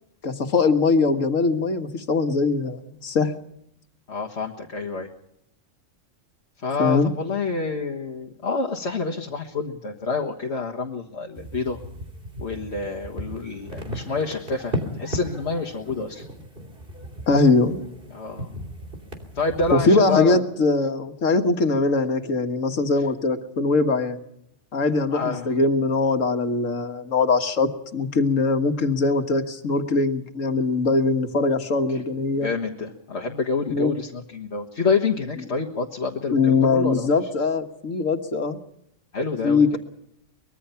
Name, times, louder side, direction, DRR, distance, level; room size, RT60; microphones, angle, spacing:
voice 1, 0.2-3.3 6.8-7.1 17.3-17.8 19.7-24.2 24.7-32.5 33.7-33.9 36.3-38.6 39.4-39.8, left 3 dB, 90° left, 7 dB, 1.9 m, -21 dB
voice 2, 4.1-5.1 6.6-11.8 12.4-16.2 18.1-18.5 19.4-20.4 23.0-23.1 25.1-25.5 31.9-32.0 32.3-37.3 39.1-39.8, left 4 dB, 60° left, 0 dB, 1.8 m, -28 dB
sound 1, 11.4-19.7, equal, 45° right, 3.3 m, -36 dB
24.0 x 21.5 x 5.7 m, 0.76 s
omnidirectional pair, 1.3 m